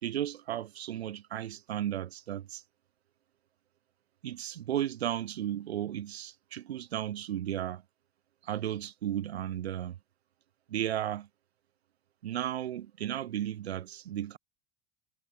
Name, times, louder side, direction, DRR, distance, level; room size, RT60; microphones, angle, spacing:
voice 1, 0.0-2.6 4.2-7.8 8.4-10.0 10.7-11.3 12.2-14.4, right 11 dB, 85° right, 0.5 m, -34 dB
hypercardioid pair, 75°, 31 cm